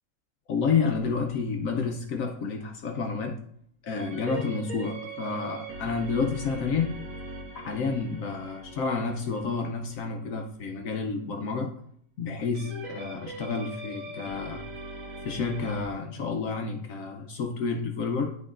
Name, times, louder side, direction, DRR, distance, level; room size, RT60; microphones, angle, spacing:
voice 1, 0.5-3.4 3.8-7.0 7.5-11.8 12.2-14.6 15.2-18.4, left 5 dB, 75° left, 3 dB, 1.1 m, -30 dB
sound 1, 0.8-2.1 4.0-10.5 12.5-15.8, right 2 dB, 70° right, 1.4 m, -41 dB
11.0 x 3.7 x 2.5 m, 0.64 s
omnidirectional pair, 1.5 m